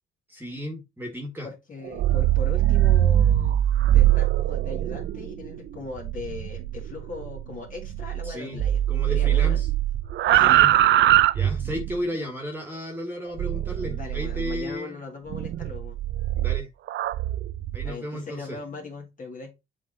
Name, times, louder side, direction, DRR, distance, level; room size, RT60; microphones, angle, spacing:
voice 1, 0.3-1.5 8.2-8.6 8.9-9.7 10.3-10.7 11.3-15.0 16.3-16.7 17.7-18.6, equal, 10° right, 1.8 m, -34 dB
voice 2, 1.4-3.6 3.9-8.8 9.1-9.6 10.3-10.8 13.8-16.0 17.8-19.5, left 3 dB, 40° left, 2.5 m, -39 dB
sound 1, 1.8-8.3 8.6-12.0 13.4-14.6 15.3-17.9, right 13 dB, 65° right, 0.5 m, -22 dB
7.5 x 3.6 x 4.2 m
cardioid pair, 90°, 20 cm